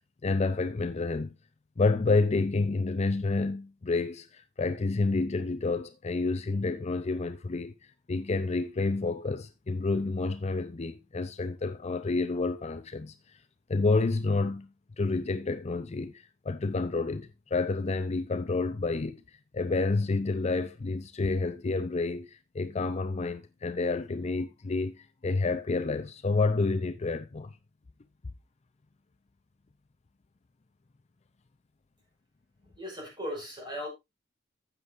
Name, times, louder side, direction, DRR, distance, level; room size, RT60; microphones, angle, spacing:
voice 1, 0.2-1.3 1.8-7.7 8.1-13.1 13.7-14.7 15.0-19.2 19.5-27.6, left 3 dB, 35° left, 0.5 m, -29 dB
voice 2, 32.6-33.9, equal, 25° right, 5.5 m, -37 dB
12.5 x 8.2 x 2.5 m
head